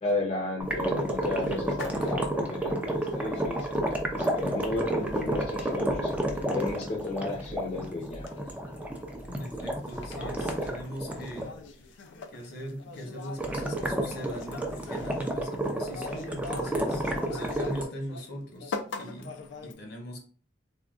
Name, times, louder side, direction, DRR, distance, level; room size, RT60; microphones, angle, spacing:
voice 1, 0.0-3.8 4.1-6.1 6.5-8.3, left 2 dB, 35° left, -2 dB, 0.6 m, -33 dB
sound 1, 0.6-11.5 13.4-17.8, right 1 dB, 10° right, 0.4 m, -31 dB
sound 2, 0.7-18.3 18.6-19.7, left 4 dB, 85° left, 0.4 m, -44 dB
voice 2, 9.2-11.5 11.9-12.0 12.3-19.3 19.6-20.3, equal, 65° left, 2 dB, 0.9 m, -40 dB
3.6 x 2.2 x 2.4 m, 0.41 s
head